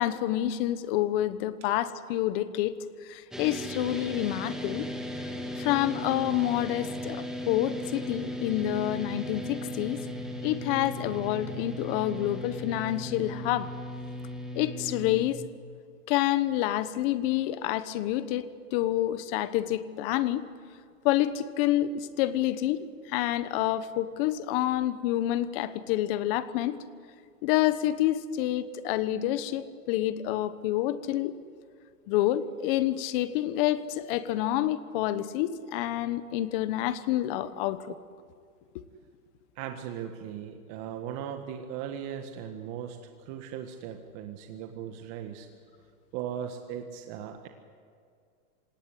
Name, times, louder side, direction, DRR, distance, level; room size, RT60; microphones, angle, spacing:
voice 1, 0.0-2.7 3.0-4.9 5.6-10.0 10.4-13.7 14.5-15.4 16.1-18.4 18.7-20.4 21.0-22.8 23.1-26.8 27.4-31.4 32.1-38.0, left 13 dB, 35° left, 14 dB, 1.2 m, -28 dB
sound 1, 3.3-15.3, left 1 dB, ahead, 2.0 m, -36 dB
voice 2, 39.5-45.5 46.1-47.5, right 9 dB, 35° right, 5 dB, 1.7 m, -38 dB
27.5 x 18.0 x 9.9 m, 2.2 s
hypercardioid pair, 145°, 46 cm